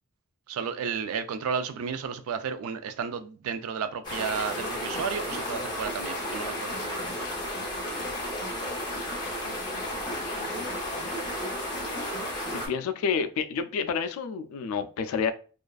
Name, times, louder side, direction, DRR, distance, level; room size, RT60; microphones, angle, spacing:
voice 1, 0.5-7.1, right 6 dB, 75° right, 0.3 m, -33 dB
sound 1, 4.0-12.7, left 1 dB, 20° left, 0.6 m, -33 dB
voice 2, 12.5-15.3, left 6 dB, 70° left, 0.3 m, -29 dB
2.4 x 2.3 x 2.3 m
head